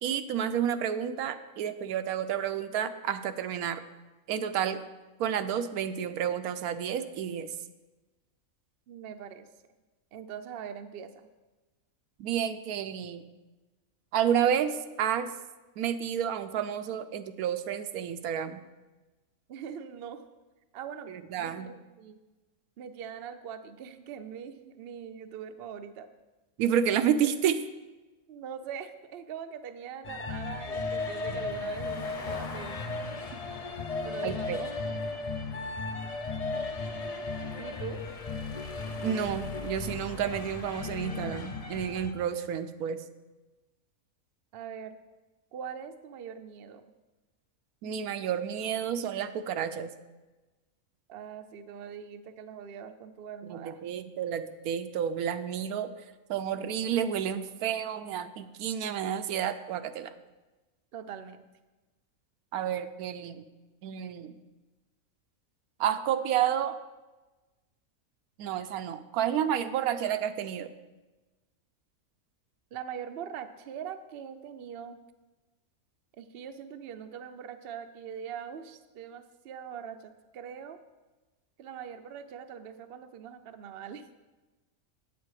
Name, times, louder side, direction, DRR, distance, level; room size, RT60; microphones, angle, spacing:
voice 1, 0.0-3.8 4.3-4.8 5.2-7.5 12.2-13.3 14.1-15.3 15.8-18.6 21.1-21.7 26.6-27.6 34.2-34.6 39.0-43.0 47.8-49.9 53.4-55.9 56.3-60.1 62.5-63.4 63.8-64.4 65.8-66.8 68.4-70.7, right 9 dB, 85° right, 10 dB, 1.1 m, -30 dB
voice 2, 8.9-9.5 10.1-11.3 19.5-20.2 20.7-21.1 21.4-22.2 22.8-26.1 28.3-32.9 34.0-34.9 37.6-38.0 44.5-45.0 45.5-46.9 51.1-53.8 60.9-61.4 72.7-75.0 76.2-80.8 81.6-84.1, right 8 dB, 60° right, 9 dB, 0.7 m, -42 dB
sound 1, 30.0-42.1, left 3 dB, 65° left, 0.3 m, -35 dB
8.2 x 7.8 x 4.7 m, 1.2 s
omnidirectional pair, 1.5 m